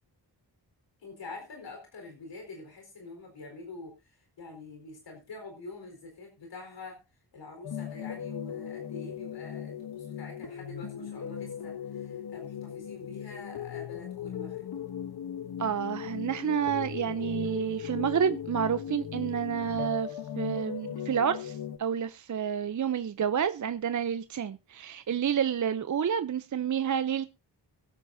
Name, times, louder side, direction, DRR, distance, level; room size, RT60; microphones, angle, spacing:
voice 1, 1.0-7.0 7.3-14.7, left 3 dB, 90° left, 4.3 m, -46 dB
sound 1, 7.6-21.8, left 9 dB, 60° left, 1.1 m, -38 dB
voice 2, 15.6-27.3, right 8 dB, 45° right, 0.6 m, -29 dB
23.5 x 8.3 x 2.7 m
wide cardioid pair, 100°, 42 cm